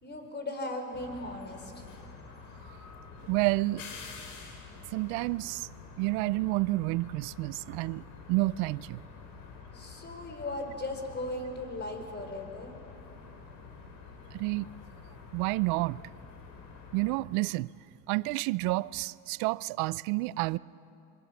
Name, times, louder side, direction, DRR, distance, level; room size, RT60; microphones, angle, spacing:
voice 1, 0.0-1.8 9.7-12.7, left 2 dB, 30° left, 4.4 m, -37 dB
sound 1, 0.9-17.2, left 5 dB, 70° left, 4.1 m, -48 dB
voice 2, 3.3-3.8 4.9-5.7 6.0-9.0 14.3-14.7 15.3-16.0 16.9-17.7 18.1-20.6, right 21 dB, 85° right, 0.5 m, -29 dB
26.0 x 22.0 x 7.2 m
supercardioid pair, 95°, 35 cm